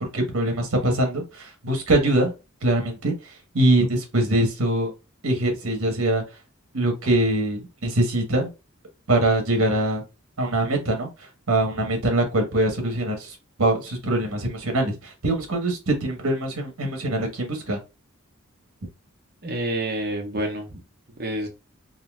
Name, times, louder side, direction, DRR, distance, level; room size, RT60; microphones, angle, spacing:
voice 1, 0.0-2.3 2.6-4.9 5.2-6.2 6.7-8.5 9.1-10.0 10.4-11.1 11.5-17.8, right 1 dB, 75° right, 3 dB, 1.2 m, -23 dB
voice 2, 19.4-20.8 21.2-21.5, right 1 dB, 45° right, 3 dB, 1.0 m, -28 dB
3.8 x 2.7 x 2.3 m, 0.26 s
head